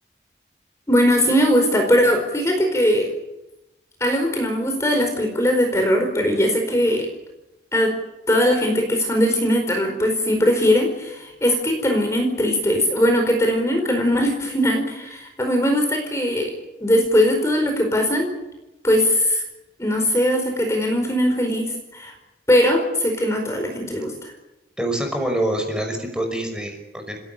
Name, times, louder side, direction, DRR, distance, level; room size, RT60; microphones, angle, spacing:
voice 1, 0.9-3.1 4.0-7.1 7.7-7.9 8.3-16.5 16.8-18.3 18.8-19.4 19.8-22.1 22.5-24.3, equal, 15° left, 3 dB, 4.7 m, -20 dB
voice 2, 24.8-27.2, right 1 dB, 5° right, 4 dB, 5.7 m, -25 dB
30.0 x 17.0 x 9.0 m, 0.98 s
head